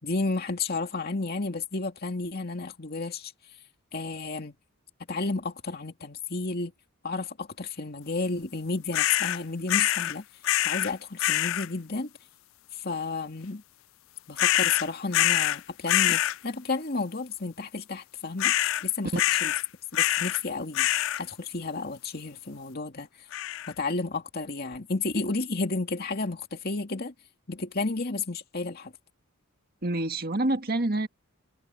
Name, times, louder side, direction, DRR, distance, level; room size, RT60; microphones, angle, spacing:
voice 1, 0.0-3.3 3.9-4.5 5.1-6.7 7.0-10.2 10.6-12.1 12.7-13.6 14.3-18.5 18.8-19.1 19.4-19.5 19.9-23.3 23.7-27.1 27.5-28.9, left 3 dB, 45° left, 2.3 m, -32 dB
sound 1, 8.9-9.4 9.7-10.1 10.4-10.9 11.2-11.7 14.4-15.6 15.9-16.4 18.4-18.8 19.2-19.6 19.9-20.4 20.7-21.2 23.3-23.7, left 14 dB, 65° left, 0.3 m, -25 dB
voice 2, 29.8-31.1, right 2 dB, 45° right, 1.7 m, -27 dB
head